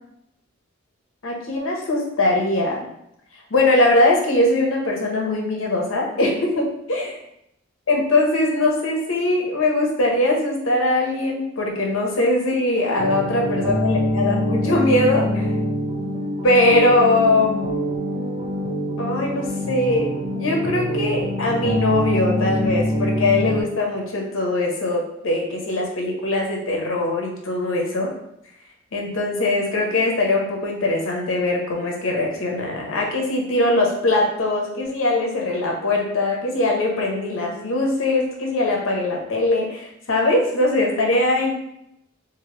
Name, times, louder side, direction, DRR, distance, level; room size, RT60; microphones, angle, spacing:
voice 1, 1.2-2.9 3.5-7.1 7.9-15.5 16.4-17.7 19.0-20.1 20.3-28.1 28.9-41.5, left 2 dB, 90° left, 0 dB, 0.7 m, -21 dB
sound 1, 13.0-23.6, equal, 30° right, 0.5 m, -24 dB
2.8 x 2.6 x 3.0 m, 0.78 s
head